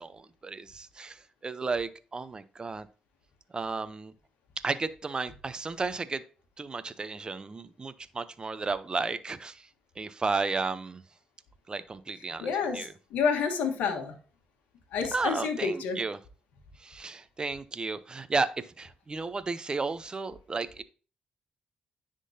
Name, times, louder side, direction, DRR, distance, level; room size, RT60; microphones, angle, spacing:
voice 1, 0.0-2.9 3.5-4.1 4.6-6.2 6.6-9.7 10.0-11.0 11.7-12.9 15.1-16.2 16.8-20.8, right 4 dB, 30° right, 0.6 m, -33 dB
voice 2, 12.4-12.9 13.1-14.1 14.9-16.0, left 6 dB, 85° left, 1.2 m, -29 dB
10.0 x 3.7 x 2.7 m
supercardioid pair, 65°, 3 cm